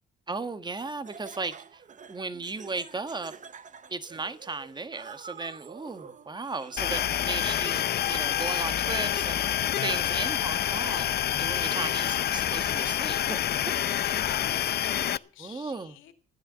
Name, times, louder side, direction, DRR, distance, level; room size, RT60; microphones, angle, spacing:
voice 1, 0.3-1.8 2.1-3.3 3.9-9.5 9.8-13.8 14.1-14.2 15.4-15.9, right 3 dB, 20° right, 1.4 m, -36 dB
Laughter, 0.8-7.6, right 6 dB, 40° right, 0.9 m, -48 dB
sound 1, 6.8-15.2, left 10 dB, 55° left, 0.6 m, -27 dB
voice 2, 13.7-16.1, left 12 dB, 90° left, 2.4 m, -45 dB
15.0 x 10.0 x 7.3 m
cardioid pair, 90°, 20 cm